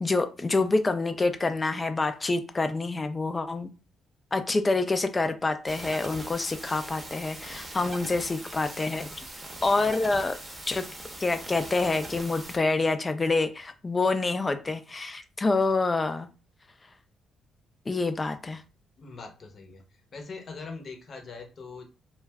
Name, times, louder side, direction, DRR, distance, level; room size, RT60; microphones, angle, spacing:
voice 1, 0.0-3.7 4.3-9.2 9.6-10.4 10.7-10.8 11.2-16.3 17.9-18.6, left 3 dB, 25° left, 9 dB, 0.4 m, -27 dB
sound 1, 5.7-12.6, right 1 dB, 20° right, 0.8 m, -41 dB
voice 2, 19.0-21.8, left 4 dB, 45° left, 4 dB, 0.7 m, -42 dB
2.4 x 2.1 x 3.3 m, 0.34 s
cardioid pair, 90°, 0 cm